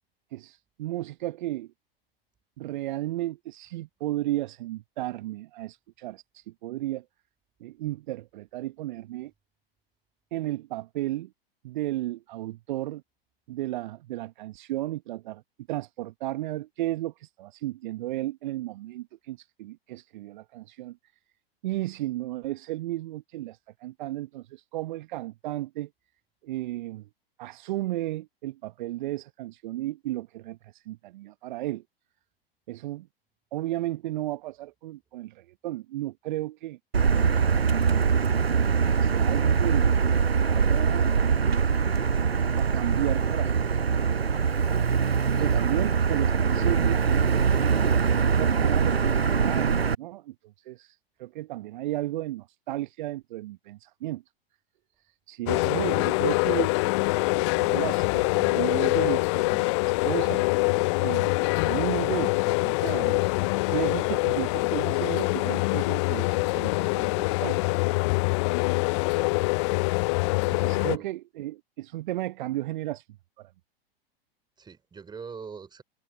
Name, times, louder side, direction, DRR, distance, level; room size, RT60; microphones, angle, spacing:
voice 1, 0.3-1.7 2.6-7.0 7.6-9.3 10.3-11.3 11.6-13.0 13.5-15.4 15.7-21.0 21.6-25.9 26.4-27.1 27.4-31.8 32.7-33.1 33.5-36.8 38.9-40.0 40.4-41.6 42.5-44.2 45.4-47.8 48.0-50.3 50.6-54.2 55.3-56.7 57.2-59.7 60.0-60.4 61.0-63.3 63.7-67.6 70.5-73.0 73.4-73.5, right 16 dB, 50° right, 1.1 m, -34 dB
Motor vehicle (road), 36.9-49.9, right 6 dB, 85° right, 0.9 m, -23 dB
voice 2, 45.3-45.6 55.5-55.6 69.1-69.4 70.7-71.1 74.6-75.8, right 5 dB, 15° right, 3.0 m, -44 dB
sound 1, 55.5-71.0, left 27 dB, 30° left, 0.4 m, -25 dB
figure-of-eight pair, 100°, 30 cm